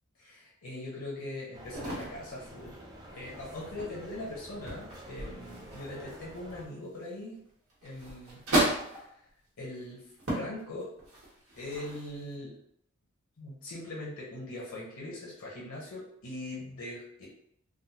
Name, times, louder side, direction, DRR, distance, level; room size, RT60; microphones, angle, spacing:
voice 1, 0.2-2.8 3.1-7.4 7.8-8.4 8.9-9.1 9.6-10.0 10.3-10.9 11.6-12.6 13.4-17.3, left 1 dB, 75° left, -6 dB, 0.9 m, -41 dB
sound 1, 1.5-6.7, right 1 dB, 20° right, 0.4 m, -47 dB
sound 2, 1.7-2.3 3.3-4.2 4.6-5.1 5.4-7.0 7.7-9.2 9.7-9.8 10.2-10.6 11.0-12.3, right 1 dB, 85° right, 1.2 m, -33 dB
3.6 x 2.0 x 2.8 m, 0.71 s
head